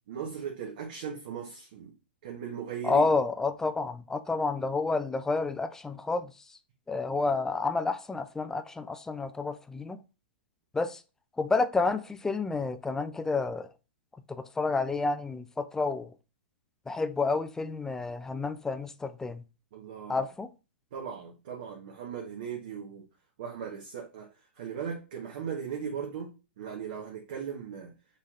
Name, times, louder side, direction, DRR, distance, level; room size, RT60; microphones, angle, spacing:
voice 1, 0.1-1.9 2.2-3.1 19.7-20.3 20.9-23.0 23.4-24.3 24.6-26.3 26.6-27.9, right 7 dB, 60° right, 1.0 m, -38 dB
voice 2, 2.8-6.3 6.9-10.0 10.7-11.0 11.4-13.7 14.3-16.1 16.9-19.4 20.1-20.5, left 3 dB, 10° left, 0.4 m, -29 dB
5.4 x 3.2 x 2.4 m
hypercardioid pair, 110°, 6 cm